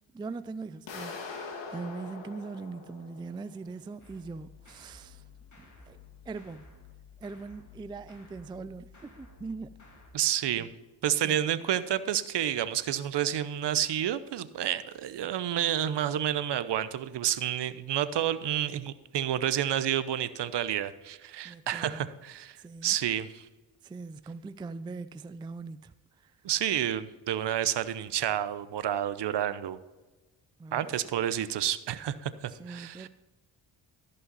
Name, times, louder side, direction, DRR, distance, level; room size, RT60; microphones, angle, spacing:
voice 1, 0.1-5.2 5.6-6.0 6.3-6.6 7.2-9.8 10.6-10.7 21.4-22.1 22.6-23.0 23.8-26.4 30.6-31.0 32.5-33.1, right 4 dB, 10° right, 0.3 m, -41 dB
sound 1, 0.9-3.7, left 4 dB, 60° left, 2.2 m, -42 dB
sound 2, 4.0-10.1, left 5 dB, 35° left, 2.7 m, -53 dB
voice 2, 10.1-10.7 11.0-22.6 22.8-23.5 26.4-29.8 30.7-33.1, right 11 dB, 55° right, 0.8 m, -30 dB
14.5 x 5.6 x 4.1 m
supercardioid pair, 60°, 50 cm